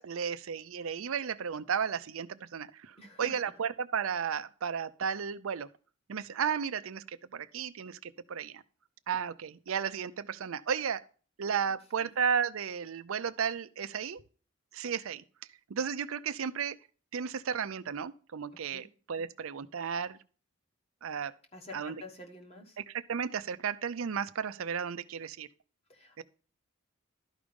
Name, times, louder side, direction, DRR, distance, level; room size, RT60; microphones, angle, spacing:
voice 1, 0.0-5.7 6.1-8.6 9.1-11.0 11.4-14.2 14.7-15.2 15.7-16.8 17.1-20.2 21.0-21.3 21.7-22.0 22.8-25.5 26.2-26.3, right 7 dB, 80° right, 0.5 m, -34 dB
voice 2, 3.0-3.4 12.0-12.1 18.7-18.9 21.5-22.8 25.9-26.2, left 3 dB, 30° left, 1.4 m, -47 dB
12.0 x 5.0 x 5.2 m
head